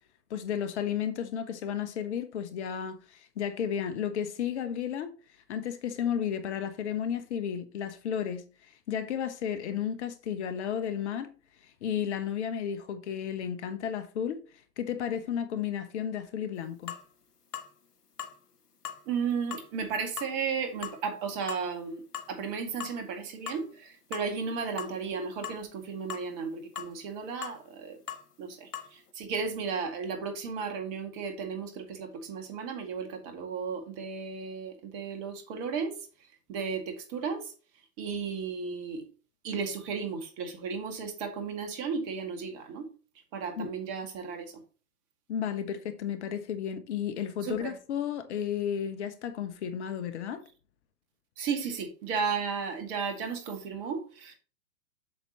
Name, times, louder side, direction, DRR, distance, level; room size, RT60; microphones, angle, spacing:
voice 1, 0.3-5.1 5.5-8.4 8.9-11.3 11.8-14.4 14.8-16.9 43.6-43.7 45.3-50.4, left 8 dB, 50° left, 1.2 m, -33 dB
sound 1, 16.9-17.1 17.5-17.7 18.2-18.4 18.9-19.0 19.5-19.7 20.2-20.4 20.8-21.0 21.5-21.7 22.1-22.3 22.8-23.0 23.5-23.8 24.1-24.3 24.8-25.0 25.4-25.6 26.1-26.3 26.8-26.9 27.4-27.6 28.1-28.2 28.7-28.9, left 8 dB, 85° left, 1.1 m, -39 dB
voice 2, 19.1-28.0 28.4-35.9 36.5-37.5 38.0-39.0 39.4-42.9 43.3-44.6 47.4-47.7 51.4-54.3, right 5 dB, 35° right, 2.2 m, -34 dB
8.1 x 6.9 x 3.0 m
figure-of-eight pair, 115°, 45 cm